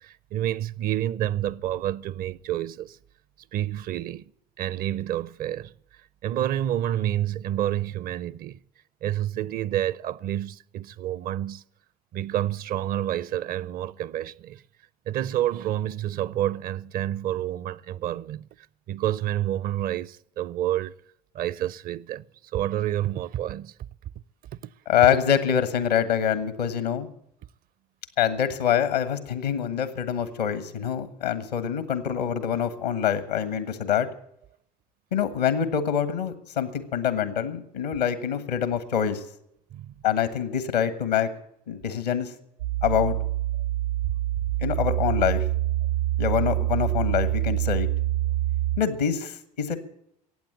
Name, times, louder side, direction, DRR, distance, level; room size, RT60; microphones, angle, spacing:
voice 1, 0.0-3.0 3.5-4.3 4.6-5.7 6.2-8.6 9.0-11.6 12.1-14.6 15.1-18.5 18.9-20.9 21.3-22.2 22.5-23.7 39.7-39.9, right 12 dB, 45° right, 0.5 m, -29 dB
voice 2, 24.9-27.1 28.2-34.1 35.1-39.2 40.0-41.3 41.7-42.3 42.8-43.2 44.6-45.4 46.2-47.9 48.8-49.8, left 8 dB, 85° left, 1.5 m, -25 dB
sound 1, 42.6-48.8, right 14 dB, 80° right, 2.7 m, -26 dB
15.0 x 8.9 x 9.8 m
hypercardioid pair, 65°, 20 cm